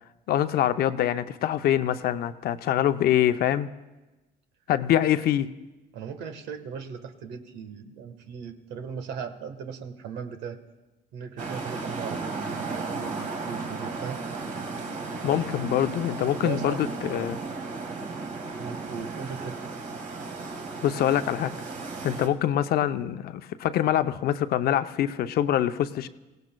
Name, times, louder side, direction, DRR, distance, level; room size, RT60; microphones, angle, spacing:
voice 1, 0.3-3.7 4.7-5.5 15.2-17.4 20.8-21.5 22.0-26.1, left 11 dB, 65° left, 10 dB, 0.7 m, -24 dB
voice 2, 5.9-10.6 11.1-14.2 16.4-16.8 18.5-19.6, right 7 dB, 90° right, 7 dB, 1.4 m, -38 dB
sound 1, 11.4-22.3, right 3 dB, 50° right, 2.2 m, -35 dB
25.5 x 17.5 x 2.3 m, 1.1 s
cardioid pair, 110°, 17 cm